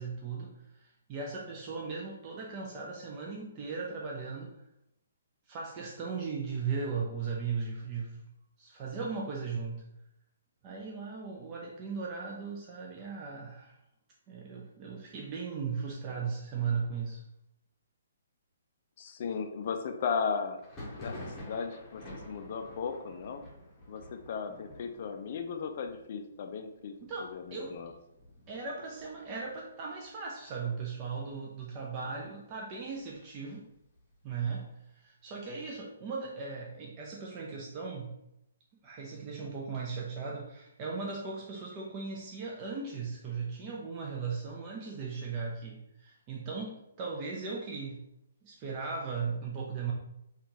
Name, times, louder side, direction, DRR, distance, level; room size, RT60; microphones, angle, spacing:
voice 1, 0.0-4.6 5.5-8.2 8.6-9.8 10.6-13.8 14.3-17.2 27.0-27.8 28.5-33.7 34.2-34.7 34.9-38.1 38.8-48.0 48.4-49.9, right 5 dB, 25° right, -2 dB, 0.4 m, -37 dB
voice 2, 19.0-20.6 21.0-23.4 23.9-26.9 27.2-27.9, left 6 dB, 45° left, 6 dB, 0.4 m, -36 dB
Thunder, 20.6-30.1 30.4-31.0 31.3-32.3 32.7-34.4, left 1 dB, 15° left, 0.9 m, -49 dB
3.5 x 2.3 x 2.8 m, 0.82 s
figure-of-eight pair, 130°, 0 cm